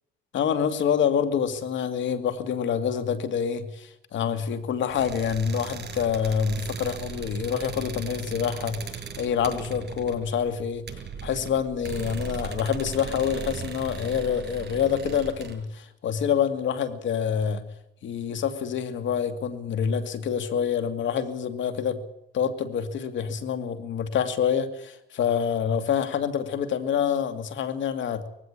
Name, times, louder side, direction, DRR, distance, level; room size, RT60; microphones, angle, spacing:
voice 1, 0.3-10.8 11.2-17.7 18.0-22.0 22.3-28.3, left 7 dB, 70° left, 11 dB, 2.3 m, -27 dB
sound 1, 4.9-15.5, right 6 dB, 55° right, 6.6 m, -38 dB
19.0 x 16.0 x 8.6 m, 0.86 s
cardioid pair, 90°, 20 cm